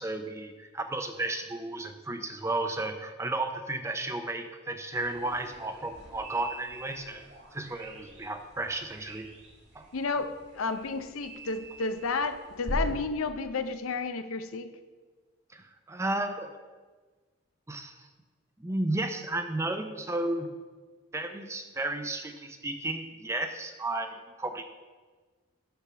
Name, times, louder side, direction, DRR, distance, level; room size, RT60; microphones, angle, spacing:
voice 1, 0.0-7.2 7.5-9.3 9.7-9.8 15.5-16.5 17.7-18.1 18.6-20.5 21.1-24.6, right 2 dB, 15° right, 7 dB, 0.5 m, -33 dB
sound 1, 4.9-12.9, right 1 dB, 55° right, 1.7 m, -41 dB
voice 2, 9.9-14.7, left 4 dB, 90° left, 9 dB, 0.6 m, -32 dB
6.8 x 6.2 x 5.6 m, 1.4 s
head